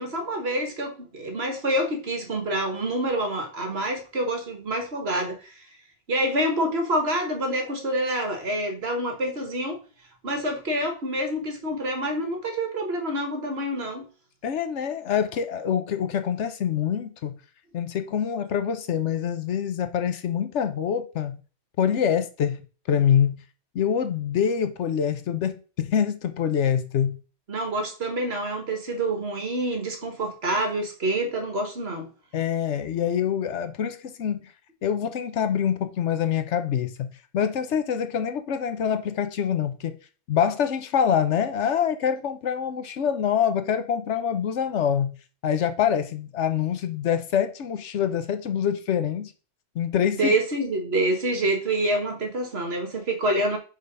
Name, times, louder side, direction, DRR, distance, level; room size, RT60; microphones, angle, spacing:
voice 1, 0.0-5.6 6.1-9.8 10.2-14.0 27.5-32.1 50.2-53.6, right 1 dB, 55° right, 1.7 m, -27 dB
voice 2, 14.4-17.4 17.7-21.4 21.8-22.6 22.9-23.4 23.7-27.2 32.3-34.5 34.8-40.0 40.3-45.1 45.4-49.3 49.7-50.3, left 8 dB, 70° left, 1.0 m, -25 dB
5.0 x 4.1 x 5.4 m
omnidirectional pair, 1.2 m